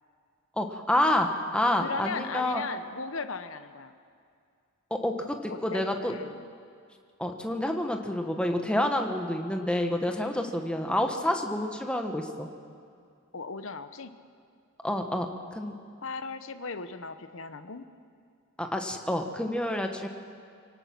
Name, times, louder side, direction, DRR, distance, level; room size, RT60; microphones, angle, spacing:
voice 1, 0.6-2.6 4.9-6.1 7.2-12.5 14.8-15.7 18.6-20.1, left 1 dB, 5° left, 4 dB, 1.2 m, -28 dB
voice 2, 1.8-3.9 5.5-6.4 13.3-14.1 16.0-17.8, left 4 dB, 65° left, 10 dB, 0.9 m, -37 dB
24.5 x 17.5 x 6.0 m, 2.3 s
head